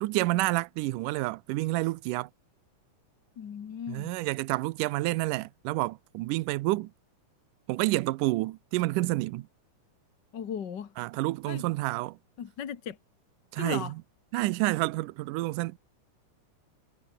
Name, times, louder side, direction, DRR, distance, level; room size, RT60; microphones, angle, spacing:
voice 1, 0.0-2.3 3.9-6.9 7.7-9.5 11.0-12.2 13.5-14.0 14.3-15.8, right 19 dB, 85° right, 2.2 m, -29 dB
voice 2, 3.4-4.0 10.3-10.9 11.5-11.6 12.4-13.0 13.6-13.9, left 8 dB, 45° left, 1.5 m, -36 dB
omnidirectional pair, 3.7 m